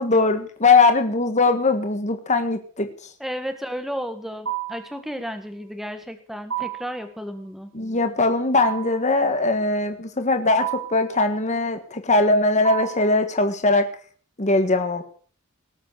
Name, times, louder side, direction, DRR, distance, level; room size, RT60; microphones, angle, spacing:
voice 1, 0.0-2.9 7.7-13.9 14.4-15.0, left 3 dB, 30° left, 7 dB, 1.5 m, -20 dB
voice 2, 3.2-7.7, equal, ahead, 8 dB, 1.5 m, -33 dB
sound 1, 4.5-4.9 6.5-7.0 8.6-9.0 10.6-11.1 12.6-13.1, right 11 dB, 60° right, 1.4 m, -29 dB
19.0 x 7.5 x 6.7 m, 0.44 s
head